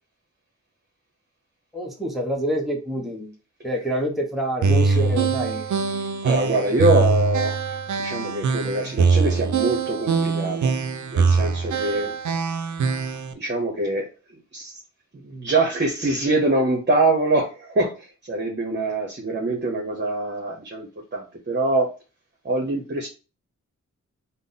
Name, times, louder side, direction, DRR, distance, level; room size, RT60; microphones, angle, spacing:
voice 1, 1.7-3.3 3.6-5.6, right 1 dB, ahead, 0 dB, 1.0 m, -27 dB
sound 1, 4.6-13.3, right 4 dB, 70° right, 0.5 m, -23 dB
voice 2, 6.2-7.5 8.0-10.8 11.1-12.1 13.3-14.1 14.5-14.7 15.1-21.9 22.4-23.1, right 2 dB, 35° right, 2 dB, 0.9 m, -24 dB
3.7 x 2.1 x 3.8 m, 0.32 s
cardioid pair, 55°, 31 cm